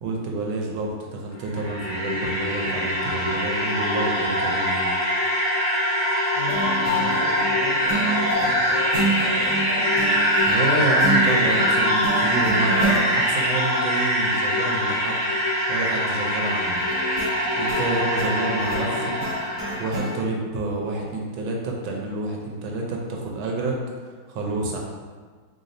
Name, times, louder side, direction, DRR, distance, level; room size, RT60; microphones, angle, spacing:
voice 1, 0.0-4.9 10.5-15.2 15.7-16.8 17.6-19.1 19.8-24.8, right 2 dB, 85° right, 0 dB, 1.4 m, -28 dB
sound 1, 1.3-20.0, equal, 30° left, 0.5 m, -23 dB
voice 2, 6.3-9.9 18.7-19.0, left 2 dB, 65° left, -3 dB, 1.3 m, -36 dB
sound 2, 6.5-13.0 16.8-20.2, right 3 dB, 50° right, 1.1 m, -30 dB
4.0 x 3.4 x 2.6 m, 1.5 s
omnidirectional pair, 2.2 m